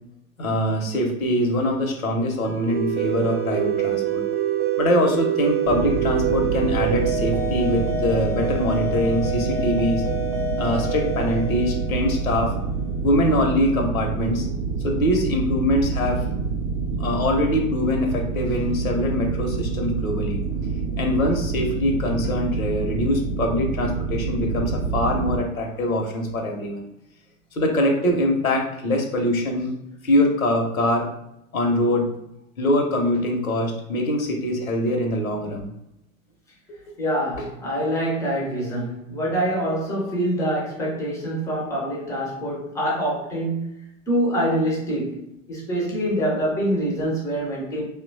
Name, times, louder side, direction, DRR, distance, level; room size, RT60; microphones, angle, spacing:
voice 1, 0.4-4.2 4.8-10.0 10.6-12.5 13.0-14.5 14.8-16.2 17.0-20.4 21.0-26.9 27.5-29.7 30.0-31.1 31.5-32.1 32.6-35.7 37.4-37.5, left 1 dB, 75° left, 3 dB, 0.7 m, -23 dB
sound 1, 2.4-12.8, right 7 dB, 30° right, 0.7 m, -27 dB
sound 2, 5.7-25.4, right 4 dB, 75° right, 0.6 m, -27 dB
voice 2, 37.0-43.8 44.1-47.9, equal, 10° left, -3 dB, 0.4 m, -25 dB
2.8 x 2.1 x 2.6 m, 0.82 s
figure-of-eight pair, 90°, 41 cm